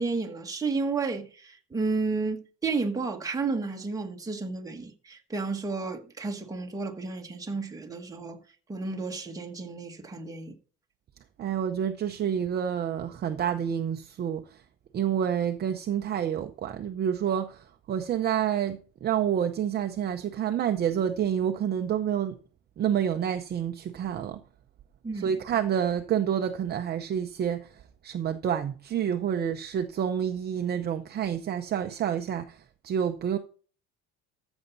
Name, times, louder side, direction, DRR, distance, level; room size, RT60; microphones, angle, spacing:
voice 1, 0.0-8.4 8.7-10.5 25.0-25.3, right 4 dB, 10° right, 1.4 m, -32 dB
voice 2, 11.4-14.6 14.9-22.4 22.8-24.4 25.1-33.4, right 9 dB, 30° right, 0.7 m, -28 dB
14.0 x 7.1 x 4.0 m
cardioid pair, 165°, 32 cm